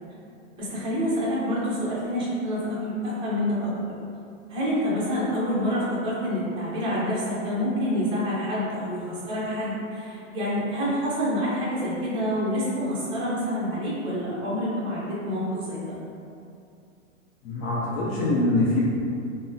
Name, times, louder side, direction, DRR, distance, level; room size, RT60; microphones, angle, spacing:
voice 1, 0.6-3.9 4.5-16.0, equal, 15° right, -8 dB, 0.6 m, -27 dB
voice 2, 17.4-18.8, left 2 dB, 50° left, -7 dB, 0.6 m, -24 dB
3.5 x 2.1 x 2.6 m, 2.5 s
hypercardioid pair, 140°, 39 cm